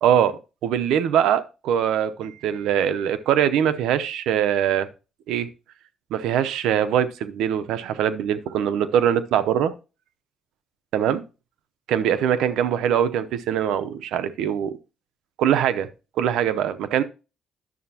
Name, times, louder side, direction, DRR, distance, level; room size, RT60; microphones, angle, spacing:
voice 1, 0.0-0.3 0.6-4.9 5.3-5.5 6.1-9.7 10.9-11.2 11.9-14.8 15.4-15.9 16.2-17.0, right 9 dB, 85° right, 13 dB, 0.7 m, -22 dB
11.0 x 6.8 x 2.8 m, 0.31 s
cardioid pair, 90°, 0 cm